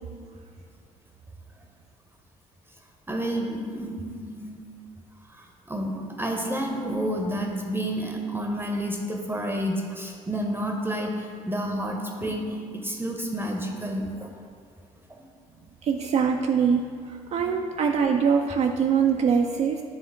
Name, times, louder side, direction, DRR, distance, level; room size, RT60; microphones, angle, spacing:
voice 1, 3.1-4.6 5.3-14.3 15.1-15.3, equal, 10° right, 1 dB, 0.7 m, -30 dB
voice 2, 15.8-19.8, right 6 dB, 40° right, 2 dB, 0.4 m, -23 dB
8.2 x 3.6 x 3.5 m, 2.2 s
figure-of-eight pair, 50°, 18 cm